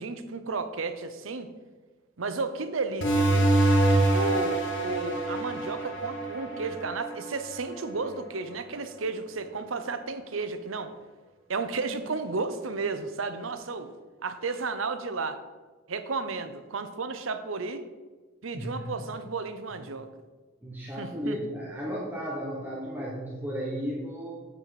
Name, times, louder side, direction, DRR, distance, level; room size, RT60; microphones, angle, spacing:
voice 1, 0.0-1.5 2.2-3.5 4.1-10.9 11.5-13.9 14.2-15.4 15.9-17.9 18.4-20.1 21.0-21.4, right 4 dB, 85° right, 9 dB, 0.8 m, -33 dB
sound 1, 3.0-8.2, right 1 dB, 60° left, 1.6 m, -26 dB
voice 2, 18.5-18.9 20.6-24.5, equal, 10° right, -5 dB, 1.2 m, -34 dB
7.6 x 5.8 x 5.9 m, 1.3 s
head